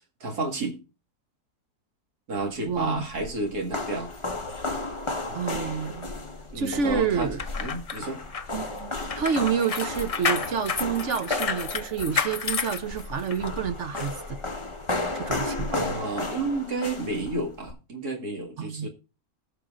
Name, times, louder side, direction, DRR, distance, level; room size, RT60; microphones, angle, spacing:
voice 1, 0.2-0.8 2.3-4.1 5.3-5.4 6.5-7.3 7.6-8.2 15.7-18.9, right 2 dB, 85° right, 2.6 m, -31 dB
sound 1, 2.7-17.7, left 2 dB, 20° left, 1.2 m, -34 dB
voice 2, 2.7-3.1 5.3-6.1 6.5-7.4 8.5-14.4 15.1-15.8 18.6-18.9, right 6 dB, 60° right, 1.0 m, -29 dB
sound 2, 7.2-13.5 13.9-14.1, left 5 dB, 50° left, 0.4 m, -31 dB
19.0 x 6.8 x 2.5 m
omnidirectional pair, 1.6 m